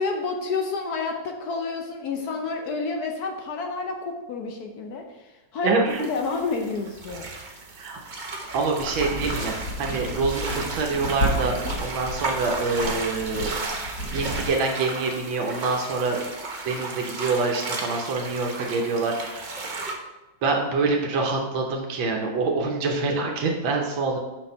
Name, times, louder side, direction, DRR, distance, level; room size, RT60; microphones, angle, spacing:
voice 1, 0.0-7.6, left 4 dB, 65° left, 4 dB, 1.1 m, -30 dB
voice 2, 5.6-6.0 7.8-8.0 8.5-11.5 11.8-13.5 14.1-16.2 16.7-19.6 20.4-24.2, right 3 dB, 85° right, 1 dB, 1.6 m, -26 dB
sound 1, 5.9-19.9, right 3 dB, 45° right, 0.6 m, -34 dB
sound 2, 8.8-14.5, equal, 45° left, 3.2 m, -32 dB
6.2 x 5.6 x 4.4 m, 1.1 s
omnidirectional pair, 2.1 m